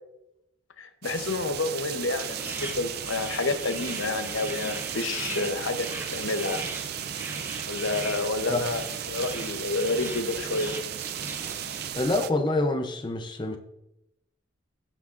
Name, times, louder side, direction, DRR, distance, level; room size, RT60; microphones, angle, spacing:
voice 1, 0.8-6.6 7.7-8.8 9.1-10.7, left 3 dB, 80° left, 8 dB, 0.8 m, -29 dB
sound 1, 1.0-12.3, right 10 dB, 50° right, 0.4 m, -35 dB
sound 2, 2.2-11.9, right 2 dB, 10° right, 0.7 m, -39 dB
voice 2, 12.0-13.6, left 2 dB, 25° left, 5 dB, 0.6 m, -26 dB
15.5 x 5.9 x 2.5 m, 0.86 s
head